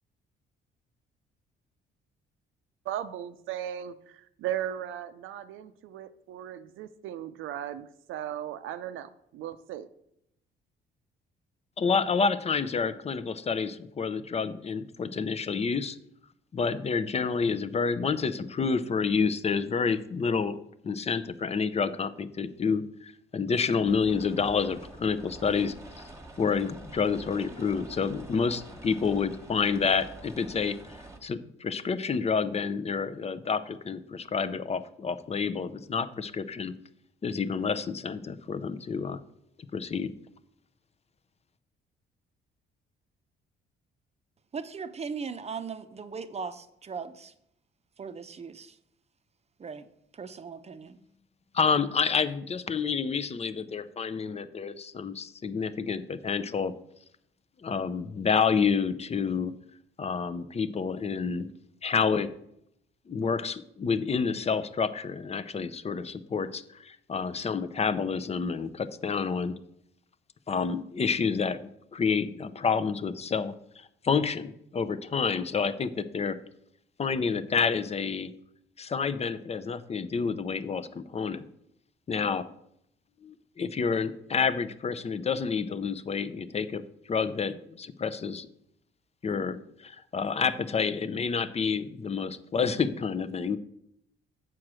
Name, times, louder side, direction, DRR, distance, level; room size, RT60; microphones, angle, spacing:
voice 1, 2.9-9.9, right 11 dB, 85° right, 0.6 m, -37 dB
voice 2, 11.8-16.0 16.5-20.6 20.8-25.7 26.4-30.8 31.2-36.7 37.2-39.2 39.7-40.1 51.5-56.7 57.6-59.5 60.0-61.5 61.8-62.3 63.1-69.5 70.5-71.6 71.9-73.5 74.0-76.4 77.0-78.3 78.8-81.5 82.1-82.5 83.2-86.8 87.1-88.5 89.2-93.6, left 5 dB, 30° left, 0.6 m, -29 dB
sound 1, 23.8-31.2, right 2 dB, 15° right, 1.3 m, -47 dB
voice 3, 44.5-47.3 48.0-48.8 49.6-49.9 50.1-51.0, right 5 dB, 30° right, 0.6 m, -38 dB
7.6 x 4.7 x 6.2 m
cardioid pair, 90°, 20 cm